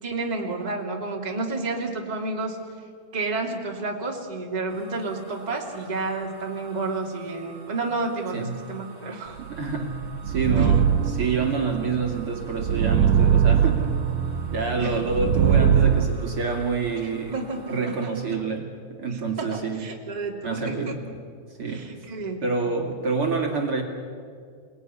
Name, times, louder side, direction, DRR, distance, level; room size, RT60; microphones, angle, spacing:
voice 1, 0.0-2.6 3.1-9.4 10.6-10.8 14.8-15.0 17.3-18.4 19.4-20.9 21.7-22.4, right 3 dB, 15° right, 0 dB, 2.8 m, -30 dB
sound 1, 4.7-18.0, right 5 dB, 30° left, 5.1 m, -49 dB
voice 2, 9.5-10.9 11.2-13.9 14.5-17.3 17.7-18.7 19.0-19.9 20.4-21.0 21.6-21.9 22.4-23.8, right 4 dB, 45° right, 1 dB, 3.2 m, -27 dB
sound 2, 9.6-16.1, right 8 dB, 90° right, 2.6 m, -22 dB
29.5 x 19.5 x 9.9 m, 2.2 s
omnidirectional pair, 3.4 m